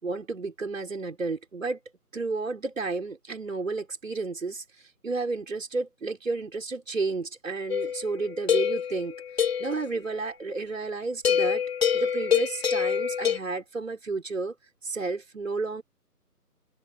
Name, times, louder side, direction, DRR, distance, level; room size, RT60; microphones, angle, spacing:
voice 1, 0.0-1.8 2.1-4.6 5.0-9.1 9.6-11.6 11.9-14.5 14.8-15.8, right 3 dB, 55° right, 4.9 m, -31 dB
sound 1, 7.7-9.8 11.2-13.4, left 8 dB, 40° left, 3.1 m, -26 dB
open air
figure-of-eight pair, 155°, 47 cm